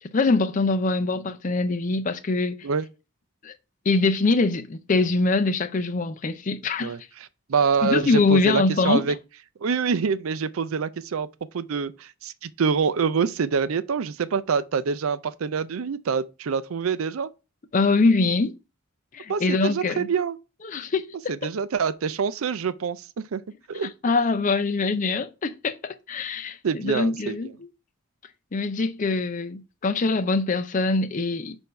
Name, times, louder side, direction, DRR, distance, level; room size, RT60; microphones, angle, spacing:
voice 1, 0.0-2.6 3.4-3.5 3.9-6.9 7.8-9.0 17.7-18.6 19.1-20.1 20.6-21.3 23.7-27.5 28.5-31.6, left 3 dB, 35° left, 0.5 m, -23 dB
voice 2, 7.5-9.2 9.6-11.3 11.5-17.3 19.3-20.4 21.3-23.4 23.7-23.9 26.6-27.5, right 5 dB, 75° right, 0.5 m, -26 dB
6.5 x 2.7 x 5.5 m
head